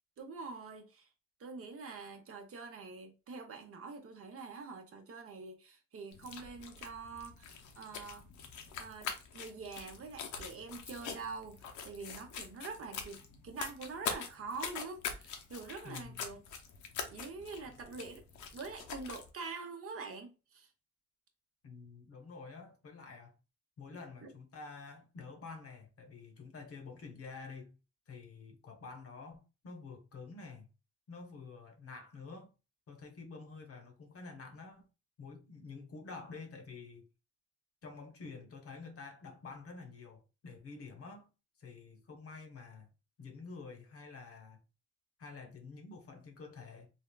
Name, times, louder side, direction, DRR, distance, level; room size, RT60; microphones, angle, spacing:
voice 1, 0.2-1.1 1.4-8.3 8.8-16.4 17.1-18.2 18.5-20.7 24.2-24.3, right 4 dB, 50° right, 0.7 m, -45 dB
sound 1, 6.1-19.3, left 6 dB, 75° left, 0.6 m, -44 dB
voice 2, 15.8-16.3 21.6-23.3 23.8-27.8 28.1-30.7 31.1-32.5 32.9-34.9 35.2-37.1 37.8-41.3 41.6-42.9 43.2-44.6 45.2-46.9, left 4 dB, 50° left, 0.8 m, -49 dB
3.4 x 2.3 x 2.3 m
cardioid pair, 90°, 30 cm